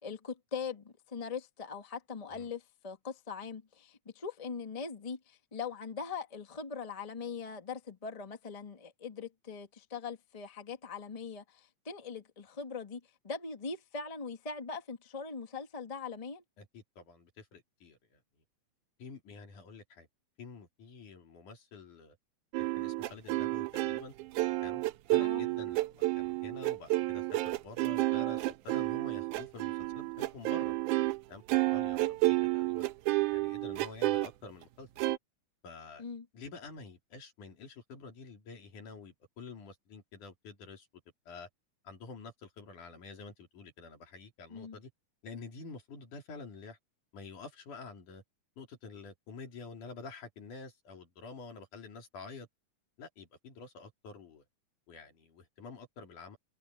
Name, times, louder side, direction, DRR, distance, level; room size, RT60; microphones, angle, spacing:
voice 1, 0.0-16.4 25.1-25.4 36.0-36.2 44.5-44.8, left 5 dB, 20° left, 0.9 m, -41 dB
voice 2, 16.6-18.2 19.0-20.1 20.4-22.2 22.6-24.1 24.6-24.8 25.1-30.8 31.3-32.9 33.3-34.9 35.6-36.0 36.3-40.9 41.3-41.5 41.8-44.9 45.2-46.8 47.1-48.2 48.6-52.5 53.0-54.4 54.9-56.4, left 4 dB, 90° left, 5.0 m, -48 dB
sound 1, 22.5-31.2 31.5-34.3 35.0-35.2, right 19 dB, 85° right, 2.3 m, -30 dB
omnidirectional pair, 3.5 m